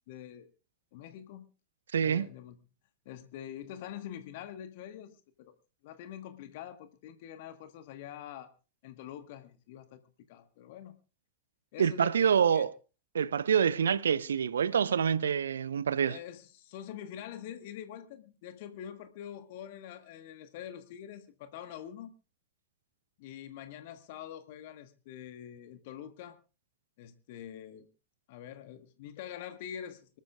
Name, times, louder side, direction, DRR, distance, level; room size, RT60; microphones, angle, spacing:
voice 1, 0.1-0.5 0.9-1.4 2.0-2.6 3.0-5.2 5.8-8.5 8.8-10.0 10.3-10.9 11.7-12.7 16.0-22.1 23.2-26.4 27.0-27.9 28.3-30.0, left 10 dB, 50° left, 1.4 m, -45 dB
voice 2, 1.9-2.3 11.8-12.7 13.1-16.2, right 7 dB, 65° right, 0.6 m, -26 dB
25.0 x 13.5 x 2.4 m
figure-of-eight pair, 90°, 0 cm